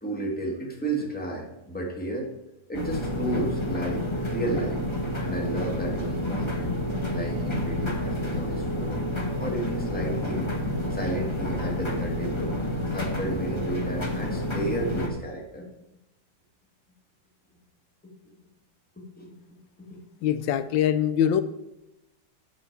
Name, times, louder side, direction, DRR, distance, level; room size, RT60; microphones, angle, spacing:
voice 1, 0.0-2.3 2.7-4.8 5.2-6.7 7.1-9.0 9.4-10.5 10.9-12.6 12.9-15.7 19.0-19.3 19.8-20.0, right 2 dB, 5° left, 0 dB, 1.4 m, -32 dB
sound 1, 2.7-15.1, left 1 dB, 20° left, 0.8 m, -29 dB
voice 2, 20.2-21.4, left 9 dB, 85° left, 13 dB, 1.3 m, -23 dB
8.7 x 7.0 x 4.5 m, 0.91 s
omnidirectional pair, 2.0 m